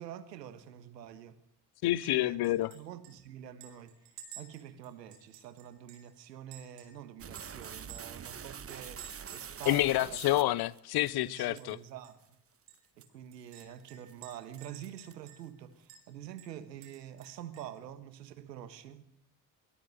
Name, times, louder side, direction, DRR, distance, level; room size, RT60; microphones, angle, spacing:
voice 1, 0.0-1.4 1.8-2.5 2.7-10.2 11.0-12.2 13.0-19.1, right 10 dB, 85° right, 1.5 m, -47 dB
voice 2, 1.8-2.7 9.7-11.8, left 16 dB, 50° left, 0.8 m, -28 dB
Chink clink, 2.4-2.8 3.0-3.1 3.6-6.1 6.5-8.2 8.7-9.8 10.2-10.3 10.6-11.3 11.6-11.7 12.0-12.1 12.7-15.6 15.9-16.0 16.4-17.8, right 8 dB, 65° right, 4.6 m, -53 dB
sound 1, 7.2-11.1 11.6-11.7 12.2-12.3 12.7-13.0 13.5-13.8 14.1-14.2 14.5-15.3, right 7 dB, 30° right, 1.2 m, -45 dB
23.0 x 13.0 x 9.1 m
hypercardioid pair, 55°, 49 cm